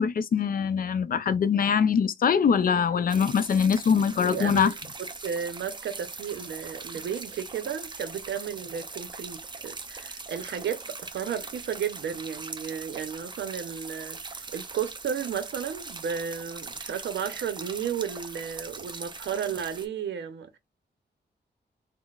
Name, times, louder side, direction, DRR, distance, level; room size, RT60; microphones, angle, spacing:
voice 1, 0.0-4.7, left 6 dB, 55° left, 0.4 m, -23 dB
sound 1, 3.1-19.9, right 4 dB, 25° right, 0.5 m, -41 dB
voice 2, 4.0-20.6, right 8 dB, 85° right, 0.6 m, -33 dB
3.8 x 2.0 x 2.3 m
cardioid pair, 95°, 18 cm